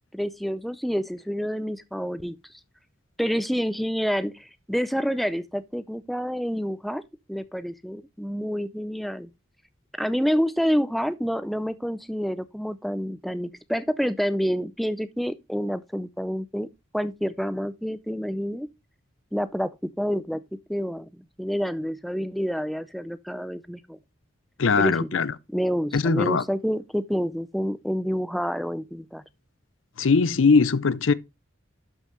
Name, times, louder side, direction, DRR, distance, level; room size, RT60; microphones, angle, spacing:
voice 1, 0.1-2.4 3.2-7.0 7.3-9.3 10.0-16.7 16.9-18.7 19.3-20.4 20.7-24.0 24.8-25.2 25.5-29.2, equal, ahead, 0.5 m, -28 dB
voice 2, 24.6-25.3 25.9-26.4 30.0-31.1, left 4 dB, 75° left, 0.6 m, -20 dB
12.0 x 5.6 x 3.1 m
head